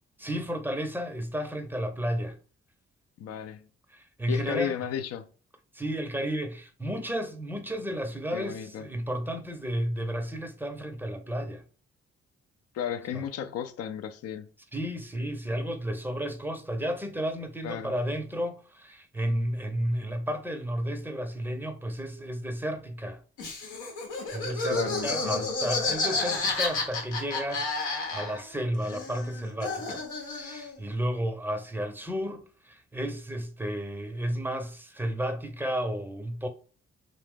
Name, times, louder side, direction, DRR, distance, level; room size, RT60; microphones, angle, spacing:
voice 1, 0.2-2.4 3.9-4.8 5.7-11.6 13.1-13.3 14.7-23.2 24.3-36.5, equal, 5° right, 0.6 m, -32 dB
voice 2, 3.2-3.7 4.3-5.3 8.3-8.9 12.7-14.5 17.6-17.9 24.7-25.5, left 8 dB, 55° left, 0.5 m, -34 dB
Laughter, 23.4-28.6 28.8-30.8, left 3 dB, 85° left, 0.9 m, -31 dB
2.7 x 2.0 x 3.5 m
hypercardioid pair, 45°, 29 cm